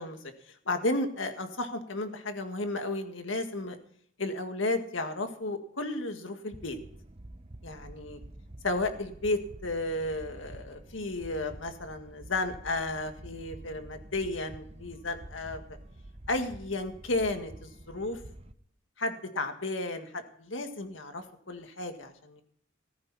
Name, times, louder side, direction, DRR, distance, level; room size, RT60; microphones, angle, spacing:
voice 1, 0.0-3.8 4.2-6.8 7.6-8.2 8.6-15.8 16.3-18.2 19.0-22.4, left 2 dB, 75° left, 6 dB, 1.9 m, -33 dB
sound 1, 6.5-18.5, right 1 dB, 30° right, 0.8 m, -48 dB
14.5 x 14.5 x 4.2 m, 0.65 s
head